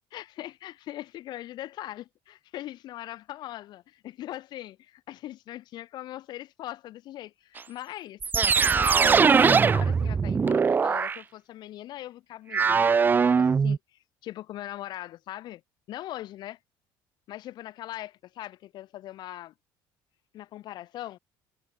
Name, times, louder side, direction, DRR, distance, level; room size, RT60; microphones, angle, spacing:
voice 1, 0.1-8.2 8.7-13.8 14.2-15.6 15.9-16.6 17.3-19.5 20.3-21.2, left 14 dB, 55° left, 3.0 m, -40 dB
sound 1, 7.6-7.7 8.2-11.2 12.5-13.8, right 5 dB, 20° right, 0.9 m, -21 dB
cardioid pair, 145°, 9 cm